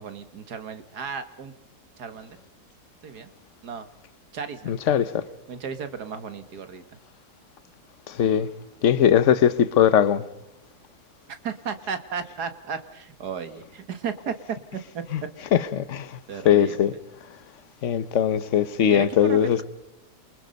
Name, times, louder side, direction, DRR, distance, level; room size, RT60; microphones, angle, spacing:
voice 1, 0.0-1.5 2.0-2.4 3.0-3.3 3.6-3.9 4.3-4.7 5.5-6.8 11.4-15.0 15.4-15.5 16.3-16.9 18.9-19.6, right 6 dB, 70° right, 2.0 m, -34 dB
voice 2, 4.7-5.2 8.2-8.5 8.8-10.2 15.7-16.1 16.4-16.9 17.8-19.6, left 9 dB, 50° left, 1.2 m, -20 dB
28.0 x 24.5 x 5.3 m
omnidirectional pair, 1.8 m